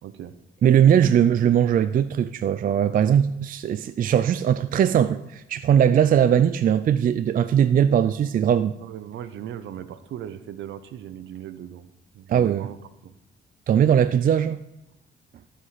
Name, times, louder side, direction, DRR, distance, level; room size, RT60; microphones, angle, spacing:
voice 1, 0.0-0.3 8.8-11.9 12.1-12.8 13.0-13.1, right 10 dB, 70° right, 12 dB, 0.8 m, -38 dB
voice 2, 0.6-8.7 12.3-12.7 13.7-14.6, right 9 dB, 45° right, 12 dB, 0.4 m, -20 dB
13.5 x 5.0 x 5.7 m, 0.88 s
cardioid pair, 90°, 20 cm